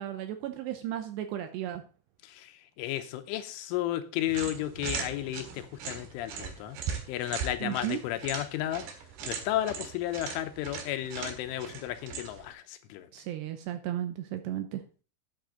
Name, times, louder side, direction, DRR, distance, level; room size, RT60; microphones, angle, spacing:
voice 1, 0.0-1.8 7.6-8.0 13.1-14.8, right 12 dB, 85° right, 8 dB, 2.6 m, -34 dB
voice 2, 2.8-6.8 7.1-8.8 9.3-13.1, left 13 dB, 90° left, 9 dB, 3.4 m, -33 dB
sound 1, 4.3-12.5, right 6 dB, 65° right, 3.5 m, -39 dB
10.5 x 9.1 x 3.8 m, 0.38 s
omnidirectional pair, 5.6 m